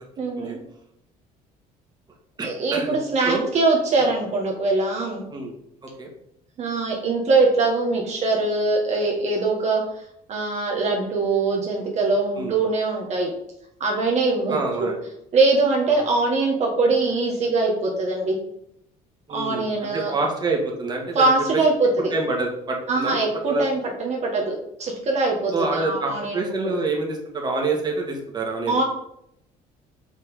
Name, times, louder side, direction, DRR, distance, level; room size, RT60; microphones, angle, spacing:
voice 1, 0.2-0.6 2.4-5.2 6.6-9.8 10.3-13.3 13.8-14.9 15.3-18.3 19.3-20.1 21.1-22.1 22.9-26.7 28.7-28.8, right 3 dB, 45° right, -1 dB, 1.7 m, -22 dB
voice 2, 2.4-3.0 3.2-3.4 4.0-4.1 5.3-5.5 5.8-6.1 12.4-12.5 14.5-15.0 15.9-16.1 19.3-21.3 22.1-23.2 23.5-23.6 25.5-28.8, right 3 dB, 25° right, 0 dB, 2.0 m, -27 dB
6.0 x 5.9 x 5.0 m, 0.75 s
cardioid pair, 120°, 16 cm